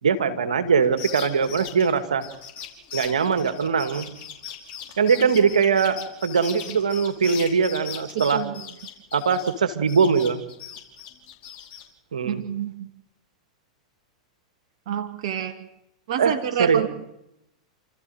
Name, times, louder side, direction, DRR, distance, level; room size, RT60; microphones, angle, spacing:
voice 1, 0.0-2.3 2.9-4.1 5.0-8.4 9.1-10.4 12.1-12.4 16.2-16.3 16.6-16.9, right 6 dB, 80° right, 10 dB, 2.1 m, -21 dB
sound 1, 0.8-9.6 9.9-11.8, left 9 dB, 40° left, 5.2 m, -38 dB
voice 2, 12.2-12.9 14.9-15.6 16.1-16.9, right 10 dB, 60° right, 8 dB, 1.3 m, -28 dB
29.0 x 14.0 x 7.8 m, 0.86 s
hypercardioid pair, 100°, 4 cm